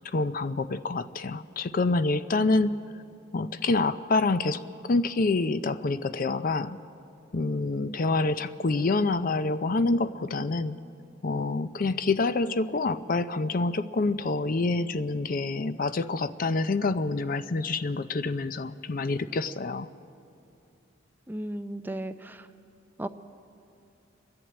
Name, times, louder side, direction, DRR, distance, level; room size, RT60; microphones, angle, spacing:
voice 1, 0.0-2.8 3.3-6.8 7.3-10.8 11.2-19.9, left 3 dB, 45° left, 13 dB, 0.5 m, -27 dB
voice 2, 21.3-22.5 23.0-23.1, right 1 dB, 10° right, 9 dB, 0.5 m, -35 dB
29.5 x 11.0 x 8.7 m, 2.7 s
head